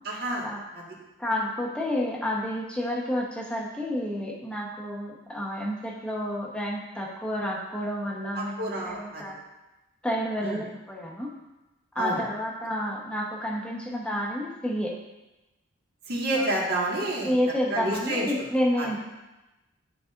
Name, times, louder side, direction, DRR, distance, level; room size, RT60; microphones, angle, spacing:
voice 1, 0.0-0.5 0.7-0.8 8.3-9.2 10.4-10.6 11.9-12.2 16.1-17.3 17.7-18.3 18.8-18.9, right 1 dB, 50° right, -4 dB, 1.7 m, -29 dB
voice 2, 1.2-9.4 10.0-11.3 11.9-14.9 16.3-16.5 17.3-19.1, equal, 5° left, -3 dB, 1.0 m, -30 dB
12.0 x 4.2 x 2.5 m, 1.0 s
head